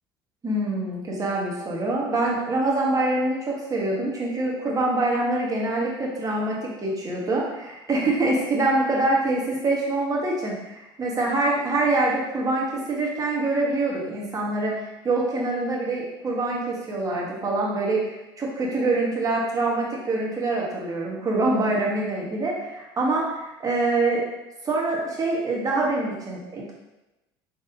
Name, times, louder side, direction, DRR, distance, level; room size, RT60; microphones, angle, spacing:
voice 1, 0.4-18.1 18.4-24.2 24.6-26.7, right 2 dB, 30° right, -3 dB, 1.4 m, -25 dB
4.2 x 3.4 x 2.7 m, 0.99 s
hypercardioid pair, 70°, 12 cm